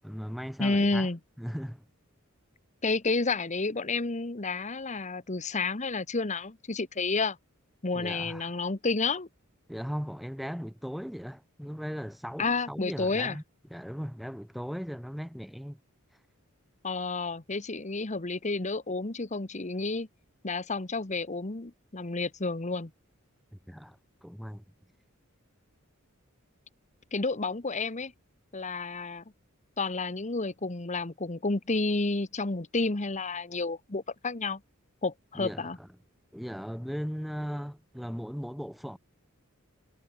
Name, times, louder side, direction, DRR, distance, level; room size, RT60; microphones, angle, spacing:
voice 1, 0.0-1.1 1.4-1.9 7.9-8.5 9.7-13.4 13.7-15.8 23.5-24.6 35.3-35.9 36.3-39.0, equal, ahead, 0.9 m, -38 dB
voice 2, 0.6-1.2 2.8-7.4 7.8-9.3 12.4-13.4 16.8-20.1 20.4-22.9 27.1-28.1 28.5-29.2 29.8-34.6 35.0-35.8, left 3 dB, 35° left, 1.2 m, -30 dB
head